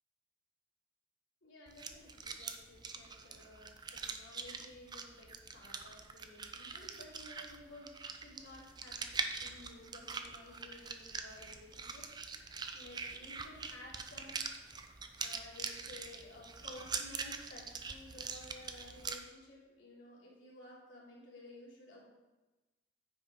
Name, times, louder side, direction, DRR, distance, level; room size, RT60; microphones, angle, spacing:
voice 1, 1.4-14.9 15.2-22.1, left 1 dB, 80° left, -5 dB, 3.1 m, -55 dB
sound 1, 1.7-19.2, right 5 dB, 20° right, 0.5 m, -43 dB
9.5 x 5.5 x 5.0 m, 1.1 s
head